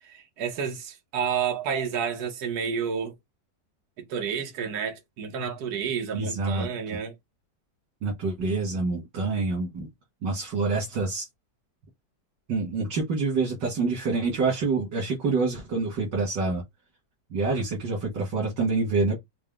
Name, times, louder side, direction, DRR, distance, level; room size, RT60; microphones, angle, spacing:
voice 1, 0.0-3.2 4.0-7.1, right 7 dB, 65° right, 1.5 m, -30 dB
voice 2, 6.1-6.7 8.0-9.9 10.2-11.3 12.5-16.6 17.3-19.2, right 3 dB, 85° right, 2.2 m, -27 dB
4.7 x 2.1 x 3.6 m
omnidirectional pair, 1.9 m